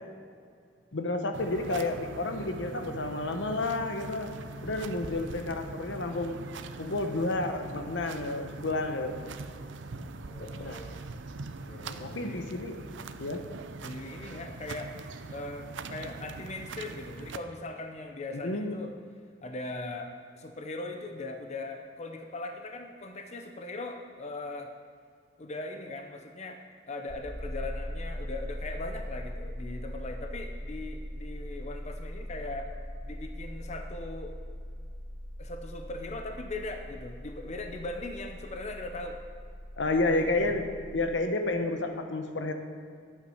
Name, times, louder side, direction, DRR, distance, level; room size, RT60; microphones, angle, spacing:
voice 1, 0.9-4.3 4.6-6.4 6.8-9.2 10.4-10.8 11.8-12.7 13.2-13.5 18.3-18.8 39.8-40.7 40.9-42.5, left 2 dB, 75° left, 6 dB, 1.0 m, -31 dB
sound 1, 1.3-17.4, right 3 dB, 80° right, 0.6 m, -42 dB
voice 2, 10.3-11.0 11.6-12.4 13.8-14.9 15.3-18.9 19.4-24.7 25.4-26.6 26.9-32.7 33.0-34.4 35.4-39.2 39.9-40.5, left 2 dB, 40° left, 5 dB, 0.7 m, -40 dB
sound 2, 27.1-41.0, equal, 35° right, 1.4 m, -40 dB
11.0 x 8.5 x 5.5 m, 2.2 s
head